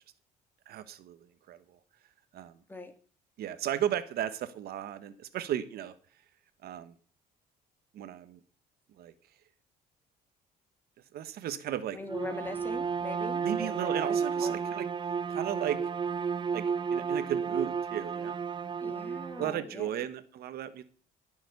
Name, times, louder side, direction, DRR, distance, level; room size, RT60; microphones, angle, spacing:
voice 1, 0.7-1.8 2.3-2.5 3.4-5.9 6.6-6.9 7.9-8.4 9.0-9.1 11.1-12.0 13.4-14.9 15.3-15.9 16.5-16.6 16.9-18.4 19.4-20.8, right 10 dB, 65° right, 13 dB, 1.2 m, -35 dB
voice 2, 11.9-14.1 14.4-14.6 18.8-19.9, left 2 dB, 10° left, 8 dB, 2.4 m, -41 dB
Bowed string instrument, 12.0-19.6, right 6 dB, 30° right, 0.6 m, -32 dB
17.5 x 7.0 x 6.8 m, 0.43 s
cardioid pair, 110°, 17 cm